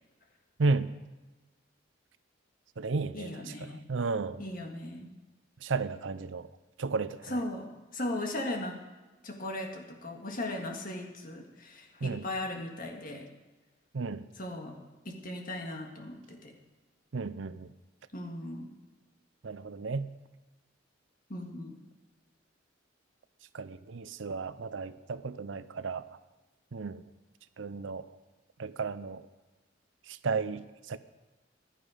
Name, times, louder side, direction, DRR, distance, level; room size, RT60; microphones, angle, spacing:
voice 1, 0.6-0.9 2.8-4.4 5.6-6.5 6.8-7.4 12.0-12.3 13.9-14.2 17.1-17.7 19.4-20.1 23.5-26.1 26.7-27.0 27.6-28.1 28.6-29.2 30.1-31.0, right 4 dB, 70° right, 14 dB, 0.6 m, -33 dB
voice 2, 3.1-3.8 4.4-5.1 7.3-8.9 9.2-13.3 14.4-14.8 15.1-16.6 18.1-18.7 21.3-21.8, left 1 dB, 45° left, 2 dB, 1.8 m, -37 dB
15.0 x 11.0 x 5.0 m, 1.2 s
head